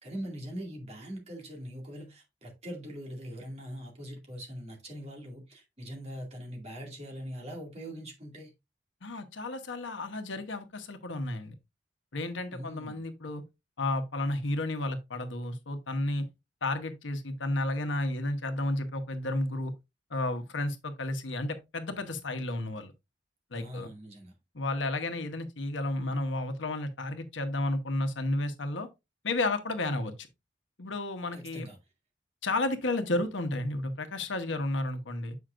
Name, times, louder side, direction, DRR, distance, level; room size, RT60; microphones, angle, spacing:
voice 1, 0.0-8.5 12.5-13.0 23.5-24.3 31.3-31.8, equal, 35° right, 2.3 m, -42 dB
voice 2, 9.0-11.5 12.1-13.4 13.8-16.2 16.6-19.7 20.1-22.9 23.5-23.9 24.5-28.9 29.2-30.3 30.8-31.7 32.4-35.4, left 2 dB, 85° left, 1.1 m, -32 dB
7.6 x 5.6 x 2.5 m
head